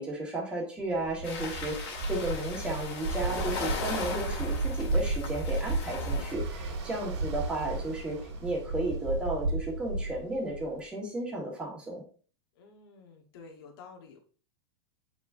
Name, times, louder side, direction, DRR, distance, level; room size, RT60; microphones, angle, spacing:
voice 1, 0.0-12.0, right 1 dB, 5° right, -2 dB, 1.4 m, -34 dB
Ocean, 0.9-10.8, right 2 dB, 70° right, 2.2 m, -33 dB
sound 1, 1.2-6.3, left 4 dB, 35° left, 2.3 m, -38 dB
voice 2, 12.6-14.2, left 4 dB, 55° left, 2 dB, 1.3 m, -50 dB
7.4 x 4.9 x 2.6 m, 0.41 s
supercardioid pair, 175°, 15 cm